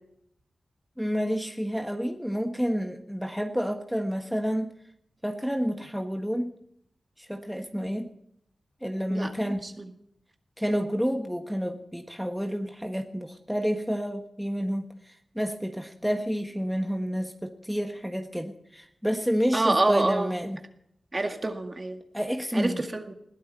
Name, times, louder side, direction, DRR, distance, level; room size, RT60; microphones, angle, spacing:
voice 1, 1.0-4.7 5.2-6.5 7.2-8.1 8.8-9.7 10.6-20.6 22.1-22.8, equal, ahead, 4 dB, 1.4 m, -29 dB
voice 2, 19.5-20.3 21.1-22.0 22.5-23.1, right 2 dB, 35° right, 5 dB, 2.0 m, -27 dB
21.0 x 15.0 x 4.2 m, 0.73 s
cardioid pair, 55°, 0 cm